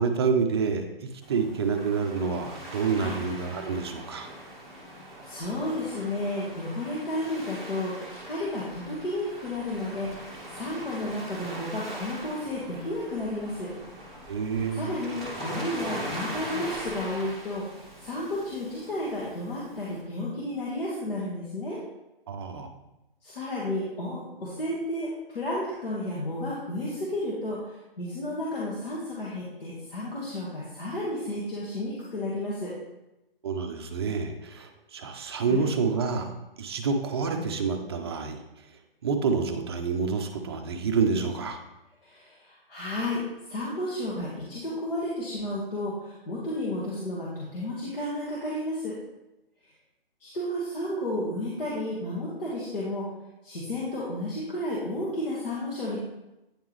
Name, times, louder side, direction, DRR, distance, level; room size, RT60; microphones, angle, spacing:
voice 1, 0.0-4.3 14.3-14.9 22.3-22.7 33.4-36.3 36.6-38.4 39.0-41.6, right 5 dB, 25° right, 5 dB, 0.5 m, -28 dB
Waves surf, 1.2-20.0, right 1 dB, ahead, 0.8 m, -41 dB
voice 2, 5.2-13.7 14.7-21.8 23.2-32.7 35.5-35.7 42.0-49.0 50.2-53.1 53.4-56.0, left 1 dB, 70° left, -6 dB, 1.6 m, -32 dB
8.7 x 3.5 x 3.1 m, 0.96 s
figure-of-eight pair, 135°, 30 cm